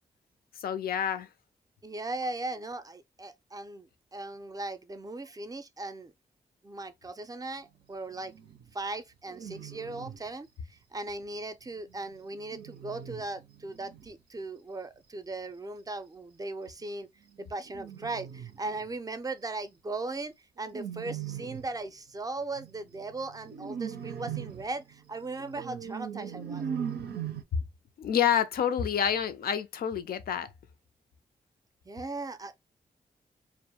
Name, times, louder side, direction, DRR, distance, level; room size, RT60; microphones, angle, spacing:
voice 1, 0.6-1.3 28.0-30.5, left 8 dB, 70° left, 0.4 m, -28 dB
voice 2, 1.8-6.1 6.6-8.3 8.7-17.1 17.4-26.6 31.9-32.6, right 2 dB, 20° right, 0.5 m, -38 dB
sound 1, 8.1-8.7 9.3-10.3 11.7-14.1 17.4-18.9 20.6-21.8 22.6-27.4, right 8 dB, 80° right, 0.5 m, -40 dB
2.2 x 2.0 x 2.8 m
supercardioid pair, 40°, 16 cm